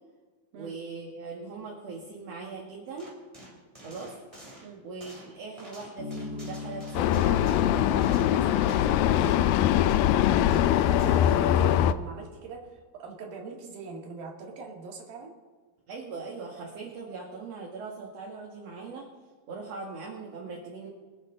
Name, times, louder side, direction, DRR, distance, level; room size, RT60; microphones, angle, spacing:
voice 1, 0.5-3.1 3.8-4.1 4.8-9.4 15.9-19.1 19.5-20.9, right 4 dB, 50° right, -2 dB, 2.5 m, -40 dB
sound 1, 3.0-9.0 9.2-9.5 9.9-10.2 10.5-11.6, right 1 dB, 10° right, 2.4 m, -49 dB
Bass guitar, 6.0-9.5, left 3 dB, 60° left, 2.9 m, -42 dB
Vehicle, 6.9-11.9, left 11 dB, 85° left, 2.3 m, -22 dB
voice 2, 10.0-15.3, right 4 dB, 80° right, 0 dB, 4.0 m, -42 dB
25.0 x 8.3 x 3.9 m, 1.4 s
omnidirectional pair, 4.1 m